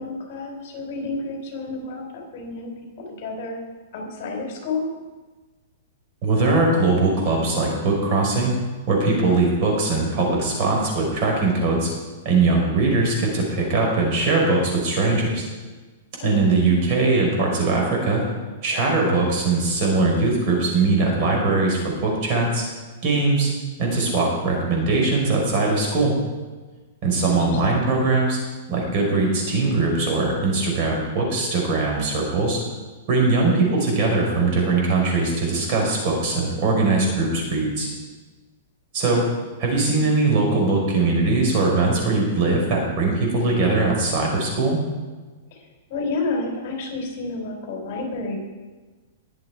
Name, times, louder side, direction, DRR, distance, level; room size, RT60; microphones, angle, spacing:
voice 1, 0.0-2.7 3.0-3.6 3.9-4.9 16.2-16.6 27.2-27.8 33.3-33.7 45.5-45.6 45.9-48.4, left 3 dB, 45° left, 1 dB, 4.3 m, -30 dB
voice 2, 6.2-8.5 8.9-11.9 12.2-15.4 16.2-18.2 18.6-22.6 23.0-23.5 23.8-26.1 27.0-28.4 28.7-32.6 33.1-37.9 38.9-39.2 39.6-44.8, right 3 dB, 40° right, -1 dB, 4.8 m, -21 dB
21.0 x 7.7 x 4.7 m, 1.3 s
hypercardioid pair, 155°, 0 cm